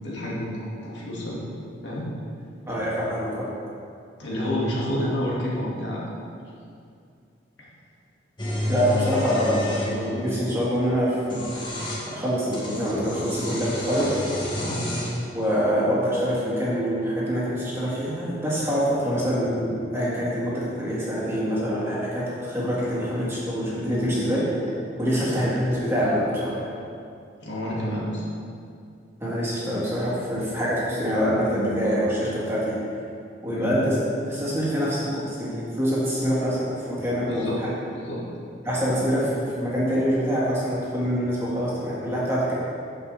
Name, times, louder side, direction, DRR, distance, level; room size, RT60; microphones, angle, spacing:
voice 1, 0.0-1.4 1.8-2.1 4.2-6.0 7.6-7.7 14.6-14.8 22.8-22.9 25.0-25.2 27.4-28.2 33.5-33.7 37.2-38.2 38.8-39.0, equal, 65° left, -6 dB, 2.0 m, -29 dB
voice 2, 2.7-3.5 8.7-14.1 15.3-24.5 25.0-26.7 29.2-32.8 33.4-34.0 34.3-37.7 38.6-42.5, equal, 15° right, -8 dB, 1.8 m, -25 dB
sound 1, 8.4-10.0 11.1-12.1 12.5-15.2, left 1 dB, 25° left, 1.3 m, -30 dB
9.5 x 7.2 x 3.4 m, 2.4 s
head